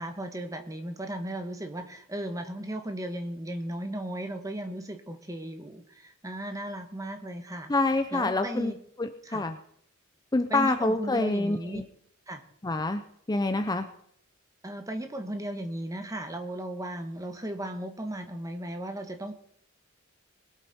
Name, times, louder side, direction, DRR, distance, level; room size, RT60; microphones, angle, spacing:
voice 1, 0.0-7.7 8.1-8.8 9.2-9.5 10.5-11.8 12.3-12.4 14.6-19.3, right 1 dB, 15° right, 6 dB, 1.4 m, -36 dB
voice 2, 7.7-8.7 9.0-9.6 10.3-11.9 12.6-13.0 13.3-13.9, left 2 dB, 20° left, 8 dB, 0.6 m, -26 dB
21.0 x 8.1 x 4.3 m, 0.68 s
head